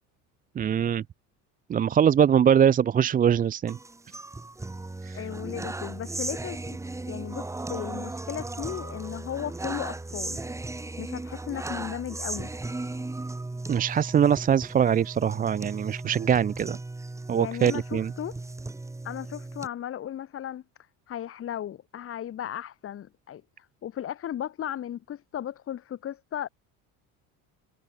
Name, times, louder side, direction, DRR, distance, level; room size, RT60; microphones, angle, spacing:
voice 1, 0.6-1.0 1.7-3.8 5.0-5.1 13.7-16.8 17.3-18.1, right 8 dB, 25° right, 0.6 m, -22 dB
sound 1, 3.7-19.7, right 2 dB, 10° right, 3.0 m, -36 dB
voice 2, 5.1-6.8 7.1-10.4 11.0-12.5 17.3-18.4 19.0-20.6 21.1-26.5, left 10 dB, 40° left, 4.9 m, -36 dB
cardioid pair, 160°, 34 cm